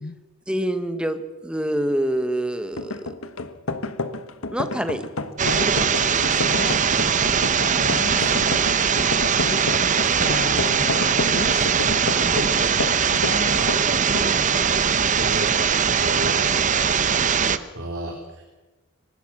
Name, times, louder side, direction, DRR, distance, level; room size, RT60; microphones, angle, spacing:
voice 1, 0.5-3.1 4.5-5.0, right 1 dB, 5° right, 9 dB, 1.4 m, -26 dB
sound 1, 2.7-13.4 13.7-13.8 14.1-14.3, left 3 dB, 70° left, 1.4 m, -30 dB
voice 2, 5.4-8.4 9.4-9.6 10.2-11.7 13.0-13.6, left 3 dB, 45° left, 15 dB, 0.9 m, -34 dB
sound 2, 5.4-17.6, right 6 dB, 35° right, 0.9 m, -21 dB
voice 3, 13.5-13.8 14.4-14.7 15.2-15.5 16.0-16.5 17.7-18.4, right 1 dB, 60° right, 0 dB, 3.6 m, -32 dB
24.0 x 20.0 x 6.2 m, 1.2 s
head